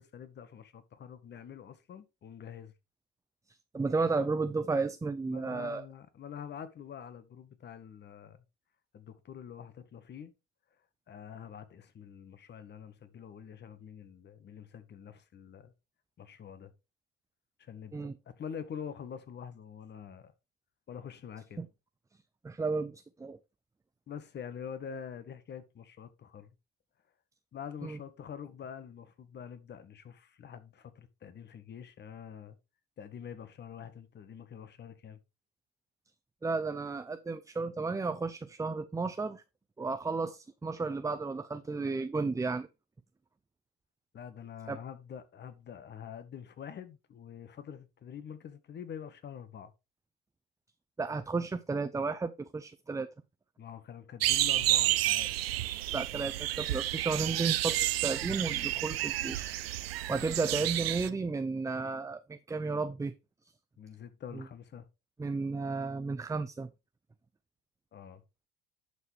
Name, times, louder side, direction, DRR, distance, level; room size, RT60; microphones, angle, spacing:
voice 1, 0.0-2.7 5.3-8.4 8.9-10.3 11.1-15.7 16.2-16.7 17.6-20.3 20.9-21.6 24.1-26.5 27.5-32.6 33.0-35.2 44.1-49.7 53.6-55.3 63.8-64.8 67.9-68.2, left 8 dB, 35° left, 1.7 m, -46 dB
voice 2, 3.5-5.9 17.9-18.1 21.6-21.7 22.4-23.4 27.8-28.0 36.4-39.4 39.8-42.7 44.7-44.8 51.0-53.1 55.9-59.6 60.1-63.1 64.3-64.4 65.2-66.7, right 4 dB, 10° right, 0.6 m, -33 dB
sound 1, 54.2-61.1, right 15 dB, 90° right, 0.8 m, -30 dB
11.0 x 6.2 x 3.5 m
hypercardioid pair, 90°, 29 cm